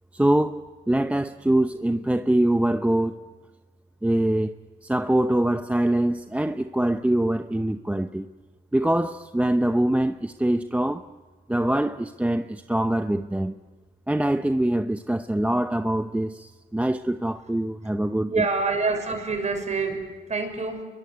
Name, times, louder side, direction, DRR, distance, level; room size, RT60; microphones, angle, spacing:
voice 1, 0.1-3.3 4.0-4.6 4.8-8.3 8.7-11.1 11.5-13.6 14.1-18.4, right 1 dB, 5° right, 0.8 m, -24 dB
voice 2, 18.3-20.8, right 4 dB, 35° right, 6.5 m, -26 dB
28.0 x 22.0 x 9.6 m
cardioid pair, 90°, 20 cm